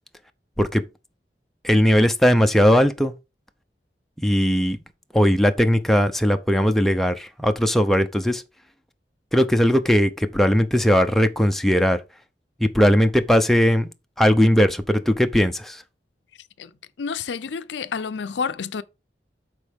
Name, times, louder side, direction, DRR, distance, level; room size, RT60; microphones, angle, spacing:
voice 1, 1.6-3.1 4.2-4.8 5.1-8.4 9.3-12.0 12.6-13.9 14.2-15.8, equal, ahead, 0.6 m, -18 dB
voice 2, 17.0-18.8, left 5 dB, 90° left, 0.5 m, -29 dB
11.0 x 4.3 x 3.5 m
head